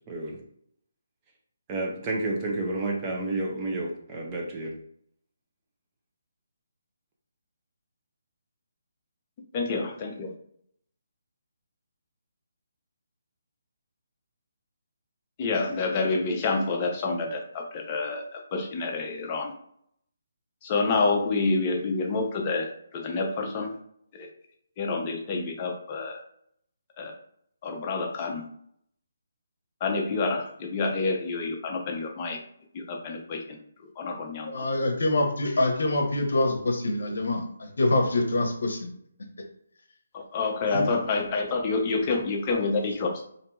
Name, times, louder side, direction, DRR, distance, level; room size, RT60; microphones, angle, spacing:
voice 1, 0.1-0.4 1.7-4.7, right 2 dB, 20° right, -1 dB, 0.5 m, -30 dB
voice 2, 9.5-10.3 15.4-19.5 20.6-23.7 24.1-24.3 24.8-26.2 27.0-27.1 27.6-28.4 29.8-32.4 32.7-34.7 40.1-43.2, left 3 dB, 30° left, 1 dB, 0.5 m, -28 dB
voice 3, 34.5-38.9 40.7-40.9, left 2 dB, 70° left, 3 dB, 0.7 m, -25 dB
2.7 x 2.6 x 2.2 m, 0.68 s
figure-of-eight pair, 155°, 0 cm